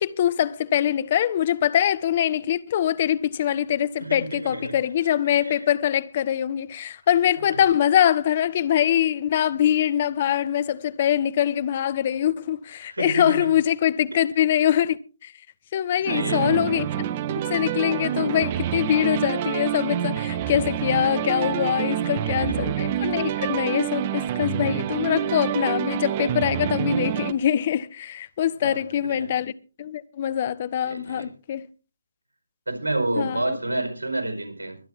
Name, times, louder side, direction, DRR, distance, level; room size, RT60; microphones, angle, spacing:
voice 1, 0.0-15.3 15.7-16.9 17.5-29.5 29.8-31.6 33.2-33.6, left 10 dB, 40° left, 0.8 m, -23 dB
voice 2, 4.0-4.8 5.4-5.5 12.9-13.4 14.1-14.2 16.1-16.5 22.5-22.7 28.6-29.3 30.8-31.3 32.7-34.8, right 2 dB, 75° right, 4.9 m, -29 dB
sound 1, 16.1-27.3, right 11 dB, 30° right, 0.7 m, -27 dB
24.0 x 8.8 x 3.6 m
figure-of-eight pair, 140°, 0 cm